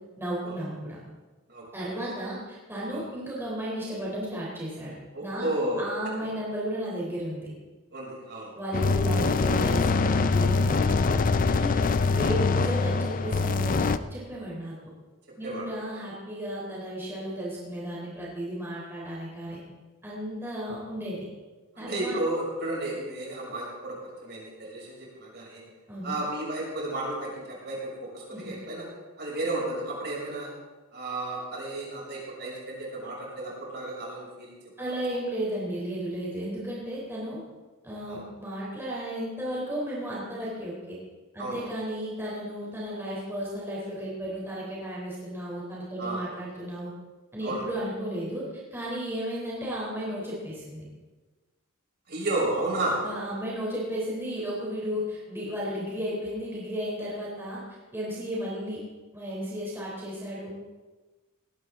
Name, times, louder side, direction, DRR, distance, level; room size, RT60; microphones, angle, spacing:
voice 1, 0.2-1.0 1.7-4.9 5.2-7.5 8.5-11.1 11.4-14.9 15.4-19.6 20.0-21.3 21.8-22.2 25.9-26.2 28.3-28.5 34.8-37.4 37.8-41.0 41.3-46.9 47.3-50.8 53.0-57.6 57.9-58.8 59.1-60.5, equal, 10° right, -6 dB, 3.6 m, -34 dB
voice 2, 5.1-5.8 7.9-8.5 15.4-15.7 15.9-16.0 21.7-25.6 26.0-28.8 29.2-30.5 30.9-34.5 34.8-34.9 38.1-38.2 41.4-41.7 46.0-46.3 47.4-47.6 52.1-53.0, right 2 dB, 50° right, -4 dB, 6.6 m, -32 dB
sound 1, 8.7-14.0, left 4 dB, 40° left, 0.5 m, -24 dB
19.0 x 16.5 x 3.8 m, 1.3 s
head